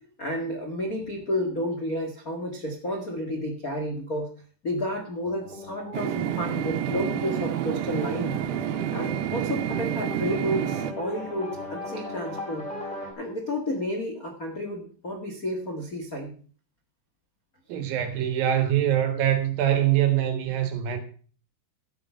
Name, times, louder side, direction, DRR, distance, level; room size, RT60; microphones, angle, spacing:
voice 1, 0.2-4.3 4.6-8.4 8.9-12.6 13.2-16.3, equal, 80° left, 0.7 m, -31 dB
sound 1, 5.2-13.1, left 2 dB, 10° left, 3.8 m, -38 dB
sound 2, 5.9-10.9, right 12 dB, 90° right, 3.1 m, -29 dB
voice 2, 17.7-21.0, right 11 dB, 65° right, 2.9 m, -24 dB
12.5 x 8.8 x 5.7 m
omnidirectional pair, 5.1 m